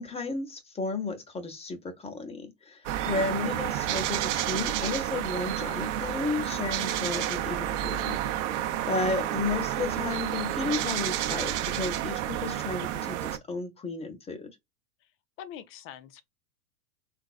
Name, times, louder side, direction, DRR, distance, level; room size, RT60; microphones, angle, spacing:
voice 1, 0.0-8.2 8.5-8.6 8.9-14.6, left 3 dB, 15° left, 0.9 m, -33 dB
sound 1, 2.8-13.4, right 12 dB, 55° right, 0.7 m, -30 dB
voice 2, 15.4-16.2, left 10 dB, 30° left, 0.5 m, -44 dB
3.8 x 2.5 x 2.4 m
hypercardioid pair, 105°, 44 cm